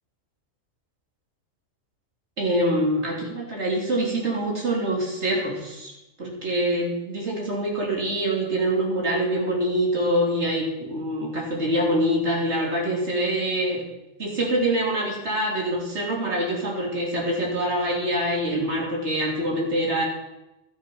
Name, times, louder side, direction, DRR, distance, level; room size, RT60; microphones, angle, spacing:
voice 1, 2.4-5.9 6.2-13.8 14.2-20.0, right 1 dB, 55° right, -2 dB, 3.3 m, -25 dB
12.0 x 9.7 x 5.5 m, 0.96 s
omnidirectional pair, 1.3 m